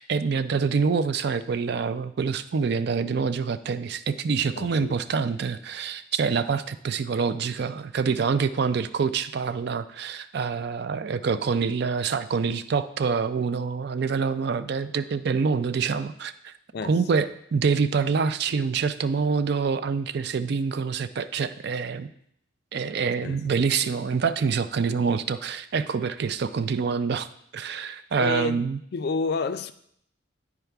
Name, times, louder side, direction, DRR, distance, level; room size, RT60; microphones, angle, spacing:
voice 1, 0.0-16.5 16.8-22.1 22.7-27.3 27.5-28.8, right 5 dB, 55° right, 0.4 m, -26 dB
voice 2, 4.6-5.0 16.7-17.0 23.2-23.9 28.2-28.6 28.9-29.7, left 4 dB, 50° left, 0.4 m, -30 dB
10.5 x 4.7 x 3.4 m
head